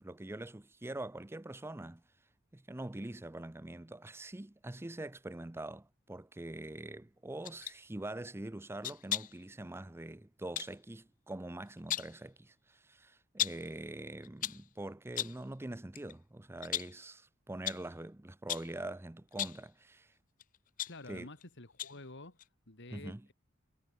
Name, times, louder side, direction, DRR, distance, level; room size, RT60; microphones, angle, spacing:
voice 1, 0.0-2.0 2.5-20.1 21.1-21.3 22.9-23.2, right 1 dB, 10° right, 0.6 m, -44 dB
sound 1, 7.4-7.8 8.8-9.4 10.6-10.8 11.7-12.2 13.4-13.7 14.2-14.7 15.2-15.5 15.9-16.1 16.6-17.0 17.7-17.9 18.5-18.8 19.3-19.7 20.4-21.4 21.8-22.1 22.4-22.5, left 12 dB, 40° left, 0.4 m, -37 dB
voice 2, 20.9-22.4 22.7-23.3, left 2 dB, 60° left, 3.2 m, -49 dB
head